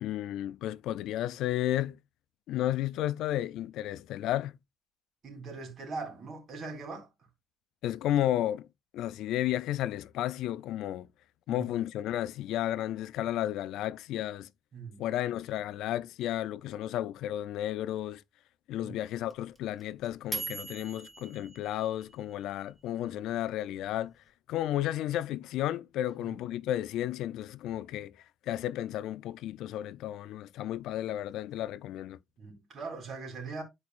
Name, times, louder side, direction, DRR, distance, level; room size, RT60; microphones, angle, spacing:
voice 1, 0.0-2.0 2.5-4.6 7.8-8.7 8.9-11.1 11.5-14.5 15.0-18.2 18.7-24.1 24.5-28.1 28.5-32.2, left 13 dB, 90° left, 0.4 m, -33 dB
voice 2, 5.2-7.1 11.5-11.7 14.7-15.0 18.8-18.9 23.0-23.1 26.2-26.4 32.4-33.6, right 4 dB, 55° right, 3.2 m, -41 dB
sound 1, 19.3-22.5, right 2 dB, 10° right, 1.1 m, -40 dB
11.5 x 4.6 x 2.4 m
cardioid pair, 90°, 0 cm